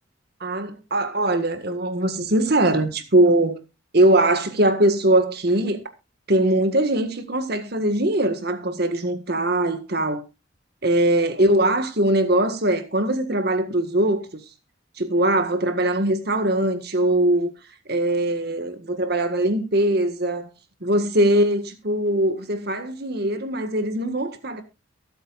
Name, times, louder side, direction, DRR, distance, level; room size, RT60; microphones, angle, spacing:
voice 1, 0.4-3.6 3.9-5.8 6.3-10.2 10.8-14.4 15.0-17.5 17.9-20.5 20.8-24.6, right 1 dB, 55° right, 1.8 m, -21 dB
23.0 x 8.0 x 2.5 m
head